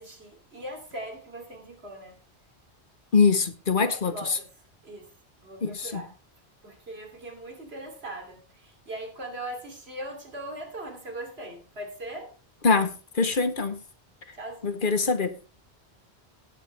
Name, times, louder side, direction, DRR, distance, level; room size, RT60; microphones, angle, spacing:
voice 1, 0.0-2.2 3.8-4.5 4.8-5.1 5.4-6.1 6.6-12.3 14.3-14.8, right 1 dB, 70° right, 3.1 m, -40 dB
voice 2, 3.1-4.4 5.6-6.0 12.6-12.9 13.1-13.8 14.6-15.3, left 4 dB, 55° left, 1.2 m, -23 dB
17.5 x 7.5 x 3.3 m
omnidirectional pair, 1.1 m